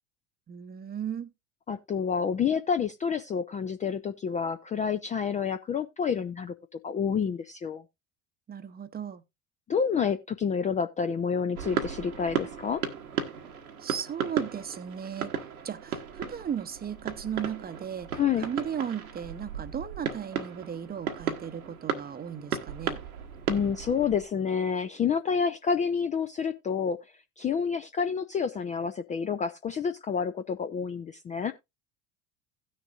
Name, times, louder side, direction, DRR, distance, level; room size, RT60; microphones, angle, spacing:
voice 1, 0.5-1.3 8.5-9.2 13.8-15.3 15.6-23.0, right 8 dB, 20° right, 0.8 m, -36 dB
voice 2, 1.7-7.8 9.7-12.8 18.2-18.5 23.5-27.0 27.4-31.5, left 6 dB, 20° left, 0.4 m, -29 dB
sound 1, 11.5-24.2, right 7 dB, 80° right, 1.3 m, -35 dB
16.5 x 6.5 x 2.5 m
figure-of-eight pair, 70°, 42 cm